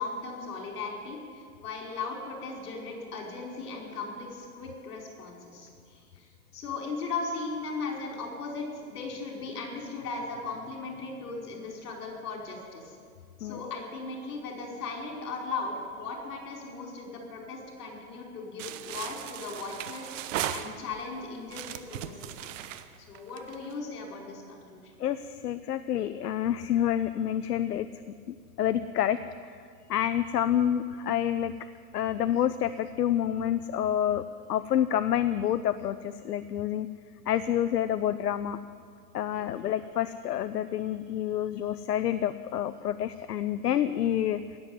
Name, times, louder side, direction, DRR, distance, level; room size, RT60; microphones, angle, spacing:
voice 1, 0.0-6.3 6.5-13.0 13.4-20.0 20.5-22.2 22.4-22.5 23.1-24.9 39.3-39.5, left 4 dB, 70° left, 0 dB, 5.4 m, -37 dB
sound 1, 18.6-21.1 21.5-23.7, right 11 dB, 55° right, 1.1 m, -37 dB
voice 2, 25.0-27.9 28.3-29.2 29.9-31.5 31.9-34.2 34.5-36.9 37.3-38.6 39.1-44.6, left 10 dB, 90° left, 12 dB, 0.7 m, -28 dB
17.5 x 7.9 x 9.8 m, 2.1 s
hypercardioid pair, 140°, 46 cm